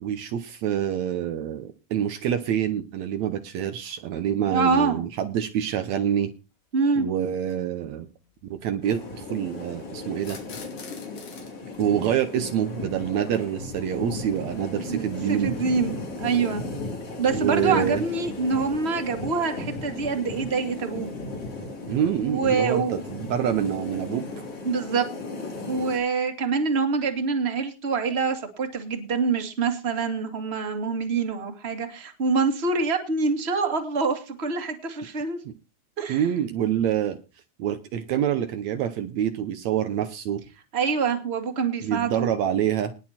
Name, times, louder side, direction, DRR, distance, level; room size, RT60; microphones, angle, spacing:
voice 1, 0.0-6.3 7.0-8.1 8.5-10.4 11.8-15.6 17.3-18.0 21.9-24.2 35.5-35.6 36.1-37.2 37.6-40.4 41.8-42.9, right 10 dB, 70° right, 9 dB, 2.1 m, -26 dB
voice 2, 4.5-5.0 6.7-7.1 14.9-16.6 17.2-21.1 22.2-22.9 24.6-25.1 25.7-35.4 36.0-36.3 40.7-42.3, right 4 dB, 25° right, 5 dB, 2.0 m, -25 dB
sound 1, 5.9-6.0 7.4-7.5 10.2-11.5, left 5 dB, 90° left, 4.4 m, -43 dB
sound 2, 8.8-26.0, left 3 dB, 50° left, 4.3 m, -36 dB
19.5 x 6.6 x 4.3 m, 0.30 s
omnidirectional pair, 3.5 m